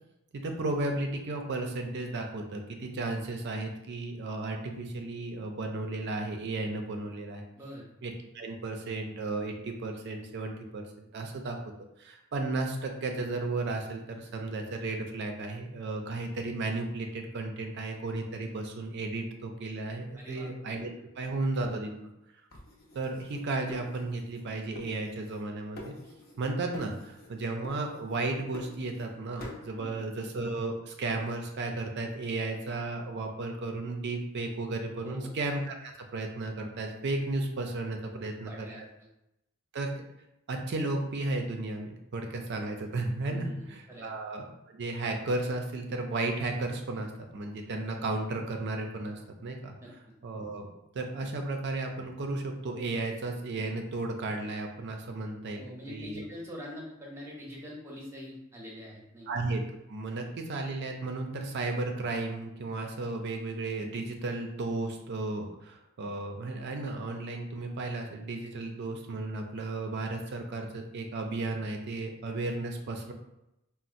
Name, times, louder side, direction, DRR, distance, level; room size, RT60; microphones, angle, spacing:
voice 1, 0.3-7.4 8.0-11.6 12.0-22.1 22.9-25.9 26.4-38.9 39.7-39.9 40.5-44.5 44.7-49.8 50.2-50.7 50.9-56.2 59.3-59.6 59.9-73.1, right 2 dB, 55° right, 3 dB, 0.4 m, -34 dB
voice 2, 7.6-7.9 20.1-20.5 29.8-30.0 35.0-35.3 38.1-38.8 43.3-44.1 49.8-49.9 55.5-59.3, equal, 10° right, -3 dB, 0.7 m, -44 dB
sound 1, 22.5-24.5 24.7-25.5 25.8-26.4 26.7-27.3 27.6-29.1 29.4-29.7, left 1 dB, 50° left, 0.6 m, -47 dB
4.1 x 2.1 x 2.5 m, 0.87 s
head